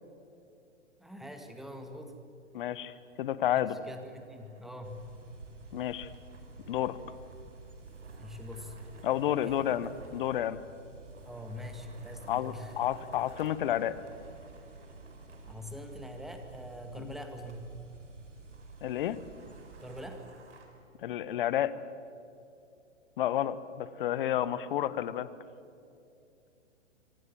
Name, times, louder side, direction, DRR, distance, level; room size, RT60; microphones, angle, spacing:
voice 1, 1.0-2.2 3.5-5.0 8.2-8.8 9.4-9.7 11.3-12.7 15.5-17.7 19.8-20.2, left 1 dB, ahead, 5 dB, 2.0 m, -44 dB
sound 1, 2.4-17.6 17.9-18.0 18.3-20.7, right 3 dB, 65° right, 5.0 m, -56 dB
voice 2, 2.5-3.8 5.7-6.1 6.7-7.0 9.0-10.6 12.3-13.9 17.0-17.1 18.8-19.2 21.0-21.7 23.2-25.3, left 11 dB, 45° left, 16 dB, 1.2 m, -30 dB
sound 2, 4.8-20.1, right 3 dB, 85° right, 3.0 m, -51 dB
25.5 x 24.0 x 7.6 m, 2.6 s
figure-of-eight pair, 115°, 36 cm